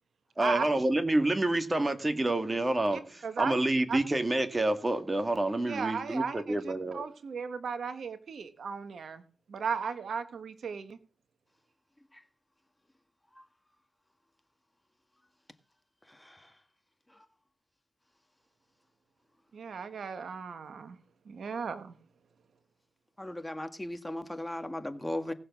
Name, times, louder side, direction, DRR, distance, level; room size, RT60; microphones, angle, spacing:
voice 1, 0.4-7.0, right 2 dB, 30° right, 2.2 m, -28 dB
voice 2, 2.9-3.6 3.9-4.0 5.7-9.2 9.5-11.0 19.5-21.0 21.3-21.9, right 6 dB, 80° right, 1.3 m, -36 dB
voice 3, 23.2-25.3, left 1 dB, 15° left, 1.6 m, -36 dB
18.0 x 6.7 x 6.1 m
cardioid pair, 45°, 0 cm